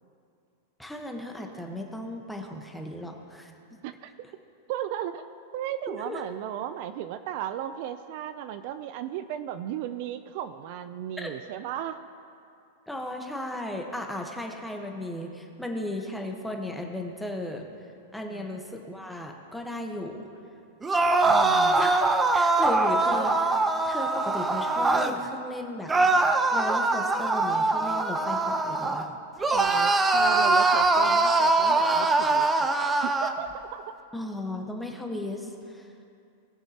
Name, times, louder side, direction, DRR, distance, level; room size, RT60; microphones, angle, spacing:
voice 1, 0.8-3.8 5.9-6.2 11.2-11.3 12.9-17.7 18.1-20.2 21.8-23.6 23.9-26.1 26.5-29.1 34.1-35.9, left 1 dB, 5° left, 2 dB, 1.1 m, -35 dB
voice 2, 4.7-5.2 5.5-12.1 18.2-18.5 21.2-21.9 29.5-32.7 33.0-33.9, right 11 dB, 55° right, 11 dB, 0.4 m, -35 dB
sound 1, 20.8-25.2 25.9-29.1 29.4-33.4, right 3 dB, 15° right, 0.6 m, -23 dB
18.5 x 7.1 x 2.9 m, 2.5 s
hypercardioid pair, 130°, 0 cm